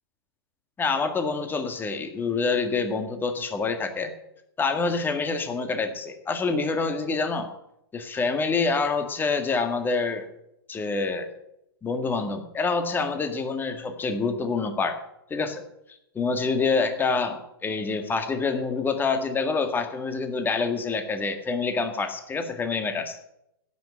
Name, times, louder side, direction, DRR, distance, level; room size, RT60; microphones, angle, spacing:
voice 1, 0.8-4.1 4.6-7.5 7.9-10.3 10.7-11.3 11.8-15.0 15.3-15.6 16.2-23.2, left 4 dB, 15° left, 7 dB, 1.8 m, -26 dB
16.0 x 6.2 x 8.4 m, 0.82 s
hypercardioid pair, 120°, 13 cm